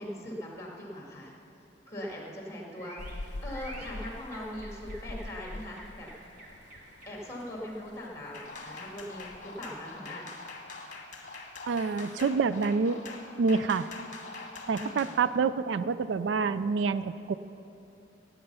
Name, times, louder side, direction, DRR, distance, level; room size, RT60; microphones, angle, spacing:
voice 1, 0.0-1.3 1.9-6.1 7.1-10.3 14.7-15.2, equal, 15° left, -2 dB, 2.3 m, -40 dB
sound 1, 1.8-7.5, right 2 dB, 50° right, 2.2 m, -51 dB
Rain, 3.0-10.0, left 2 dB, 65° left, 0.7 m, -45 dB
sound 2, 8.3-15.2, left 3 dB, 40° left, 1.4 m, -44 dB
voice 2, 11.7-13.0 13.4-13.9 14.7-17.3, right 5 dB, 75° right, 14 dB, 0.4 m, -27 dB
17.0 x 8.8 x 5.6 m, 3.0 s
head